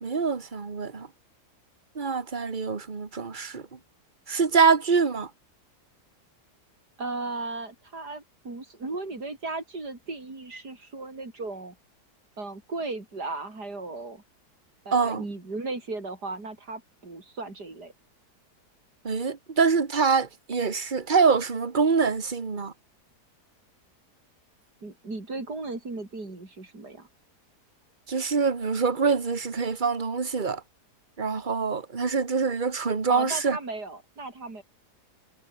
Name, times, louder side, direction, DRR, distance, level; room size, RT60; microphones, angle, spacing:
voice 1, 0.0-1.1 2.0-3.6 4.3-5.3 14.9-15.2 19.0-22.7 28.1-30.6 31.2-33.6, right 5 dB, 30° right, 1.8 m, -25 dB
voice 2, 7.0-11.8 12.4-14.2 14.9-17.9 24.8-27.1 33.1-34.6, right 3 dB, 75° right, 5.9 m, -36 dB
omnidirectional pair, 1.7 m